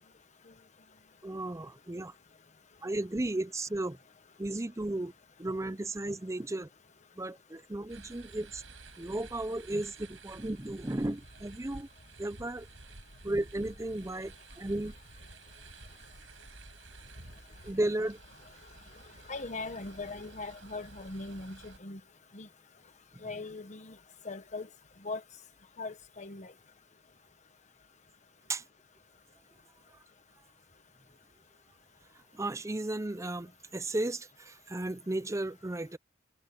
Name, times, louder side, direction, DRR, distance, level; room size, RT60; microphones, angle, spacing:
voice 1, 1.2-2.1 2.8-4.0 4.4-5.1 5.4-6.7 7.2-8.6 9.0-11.9 12.2-12.7 13.2-14.9 17.6-18.2 28.5-28.6 32.3-36.0, right 1 dB, 15° right, 0.6 m, -34 dB
sound 1, 7.9-21.8, right 3 dB, 85° right, 5.0 m, -52 dB
voice 2, 19.3-22.0 22.3-22.5 23.2-23.9 24.2-24.7 25.0-25.2 25.8-26.5, left 3 dB, 35° left, 1.2 m, -40 dB
head